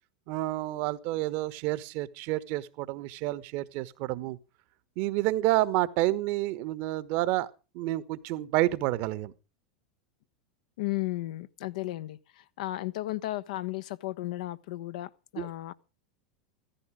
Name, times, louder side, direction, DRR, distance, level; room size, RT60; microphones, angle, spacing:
voice 1, 0.3-4.4 5.0-9.3 15.4-15.5, right 16 dB, 55° right, 1.3 m, -29 dB
voice 2, 10.8-15.7, left 17 dB, 65° left, 1.1 m, -34 dB
15.5 x 14.5 x 5.0 m
hypercardioid pair, 90°, 4 cm